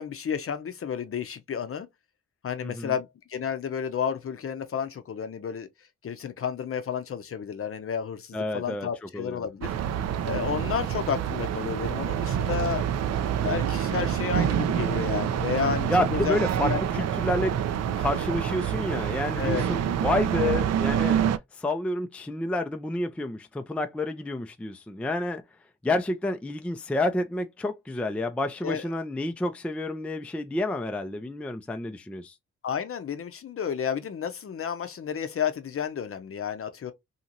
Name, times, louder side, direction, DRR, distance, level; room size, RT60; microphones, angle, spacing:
voice 1, 0.0-1.9 2.4-5.7 6.0-9.7 10.2-12.9 13.4-16.8 19.4-19.6 28.6-28.9 32.6-36.9, left 7 dB, 45° left, 0.7 m, -31 dB
voice 2, 2.6-2.9 8.3-8.9 9.1-9.4 15.9-17.6 18.0-21.2 21.5-25.4 25.8-32.3, left 1 dB, 5° left, 0.4 m, -29 dB
sound 1, 9.6-21.4, right 9 dB, 55° right, 0.5 m, -27 dB
2.8 x 2.5 x 2.8 m
hypercardioid pair, 45°, 32 cm